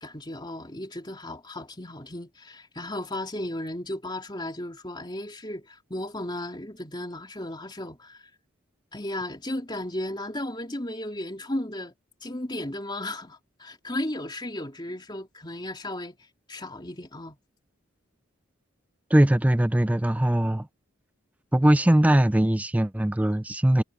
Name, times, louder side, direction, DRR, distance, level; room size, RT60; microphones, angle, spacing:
voice 1, 0.0-8.3 8.9-11.9 12.2-16.2 16.5-17.4, left 1 dB, 20° left, 2.9 m, -35 dB
voice 2, 19.1-20.7 21.5-23.8, right 1 dB, 5° right, 0.4 m, -21 dB
head